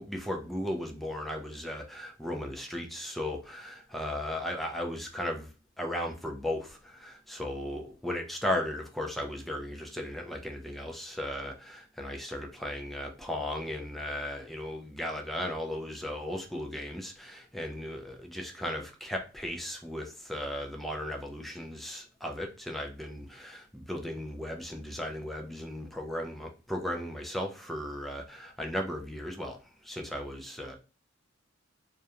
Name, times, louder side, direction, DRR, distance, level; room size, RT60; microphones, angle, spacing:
voice 1, 0.0-5.5 5.8-29.6 29.8-30.8, left 1 dB, ahead, 2 dB, 0.3 m, -36 dB
2.4 x 2.1 x 2.7 m, 0.33 s
head